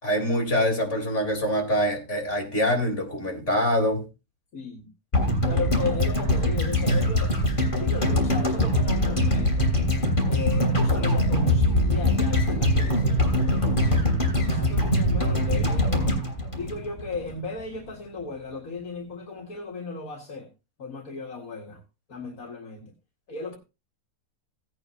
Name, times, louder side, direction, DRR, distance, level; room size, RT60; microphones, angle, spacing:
voice 1, 0.0-4.1, equal, 50° left, 4.0 m, -24 dB
voice 2, 4.5-4.9 5.5-7.3 7.8-9.7 10.3-14.0 14.5-16.2 16.6-20.5 20.8-21.8 22.1-22.9 23.3-23.5, left 4 dB, 70° left, 2.2 m, -36 dB
sound 1, 5.1-17.3 17.6-17.7, left 1 dB, 35° left, 3.2 m, -23 dB
17.0 x 8.9 x 2.8 m
omnidirectional pair, 1.5 m